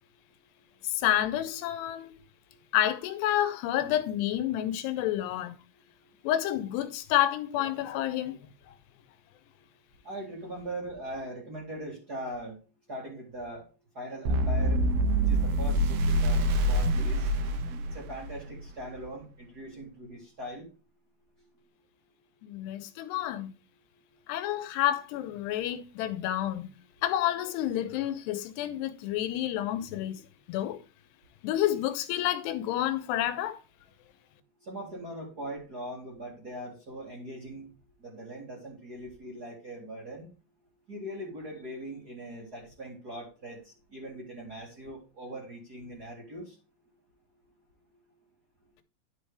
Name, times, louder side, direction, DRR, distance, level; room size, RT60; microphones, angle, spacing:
voice 1, 0.8-2.1 2.7-5.5 6.2-8.4 22.4-23.5 24.3-26.7 27.0-30.2 30.5-30.8 31.4-33.6, left 12 dB, 85° left, 2.9 m, -29 dB
voice 2, 10.0-12.6 12.9-13.6 13.9-14.8 15.2-17.3 17.9-20.6 34.6-37.7 38.0-40.3 40.9-46.5, right 1 dB, 30° right, 2.0 m, -41 dB
sound 1, 14.3-18.4, right 1 dB, 75° right, 2.9 m, -25 dB
10.5 x 5.5 x 3.4 m
omnidirectional pair, 4.8 m